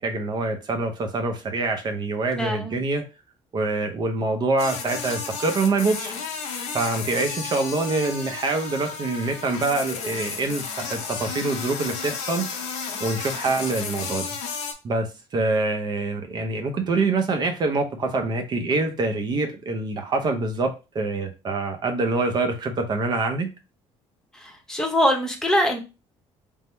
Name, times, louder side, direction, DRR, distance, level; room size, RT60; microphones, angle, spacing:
voice 1, 0.0-3.0 3.5-6.1 6.7-12.5 13.0-14.3 14.8-15.1 15.3-23.5, right 3 dB, 40° right, 5 dB, 0.7 m, -25 dB
voice 2, 2.4-2.8 24.3-25.8, equal, 5° left, 2 dB, 0.9 m, -23 dB
sound 1, 4.6-14.7, left 5 dB, 80° left, 0.8 m, -33 dB
3.5 x 2.1 x 4.3 m, 0.28 s
cardioid pair, 135°, 11 cm